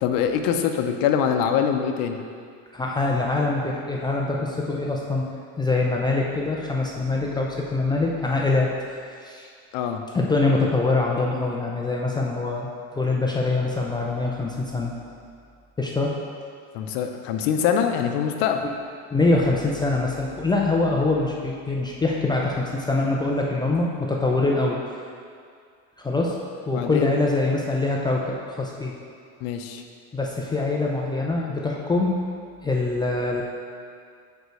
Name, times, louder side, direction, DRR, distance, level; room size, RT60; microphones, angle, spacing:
voice 1, 0.0-2.2 9.7-10.0 16.7-18.6 26.7-27.1 29.4-29.8, left 8 dB, 65° left, 5 dB, 0.7 m, -24 dB
voice 2, 2.7-5.3 5.6-8.7 9.1-9.5 10.1-12.7 13.0-14.9 15.8-16.1 18.6-18.7 19.1-24.8 26.0-26.4 26.7-28.9 30.1-32.1 32.6-33.4, left 3 dB, 10° left, -2 dB, 0.4 m, -24 dB
5.2 x 4.6 x 6.3 m, 2.2 s
cardioid pair, 135°, 38 cm